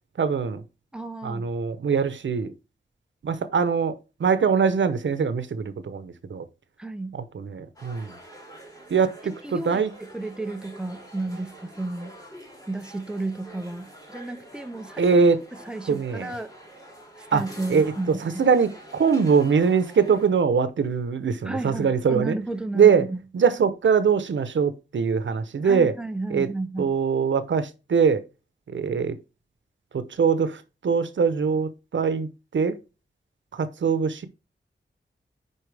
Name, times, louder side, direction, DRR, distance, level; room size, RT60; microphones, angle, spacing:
voice 1, 0.2-0.6 1.2-2.5 3.2-3.9 4.2-6.4 7.3-8.1 8.9-9.9 15.0-15.4 15.9-16.3 17.3-17.4 17.7-17.9 18.2-22.4 22.7-23.1 23.3-25.9 26.3-26.5 26.8-28.2 28.7-29.2 29.9-32.8 33.5-34.3, right 6 dB, 90° right, 0.8 m, -22 dB
voice 2, 0.9-1.5 6.8-7.2 9.2-12.2 12.7-15.0 15.5-16.5 17.2-18.5 21.4-23.2 25.6-26.9, right 2 dB, 5° right, 0.7 m, -33 dB
sound 1, 7.8-20.3, right 1 dB, 20° left, 3.2 m, -46 dB
10.0 x 4.2 x 3.4 m
wide cardioid pair, 110°, 19 cm